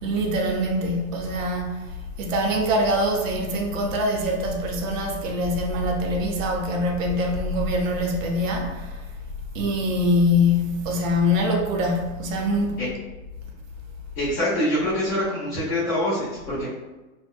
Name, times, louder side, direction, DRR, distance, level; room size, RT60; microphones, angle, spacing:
voice 1, 0.0-1.8 2.2-9.0 9.5-12.8, left 1 dB, 65° right, 0.7 m, -24 dB
voice 2, 14.1-16.7, left 1 dB, 30° left, 0.9 m, -25 dB
2.6 x 2.0 x 2.4 m
supercardioid pair, 155°, 42 cm